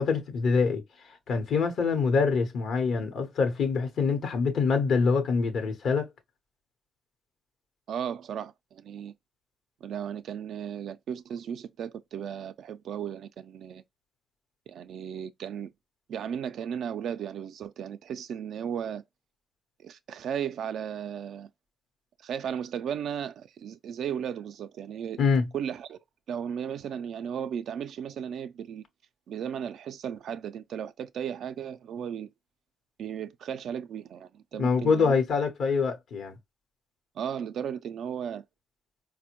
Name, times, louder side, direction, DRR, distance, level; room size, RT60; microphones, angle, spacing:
voice 1, 0.0-6.1 25.2-25.5 34.6-36.4, left 5 dB, 75° left, 0.8 m, -25 dB
voice 2, 7.9-9.1 9.8-13.8 14.7-15.7 16.1-19.0 19.8-21.5 22.2-25.2 25.5-26.0 26.3-28.8 29.3-32.3 33.0-35.2 37.2-38.4, right 8 dB, 75° right, 0.3 m, -35 dB
4.2 x 2.1 x 2.9 m
supercardioid pair, 65°, 0 cm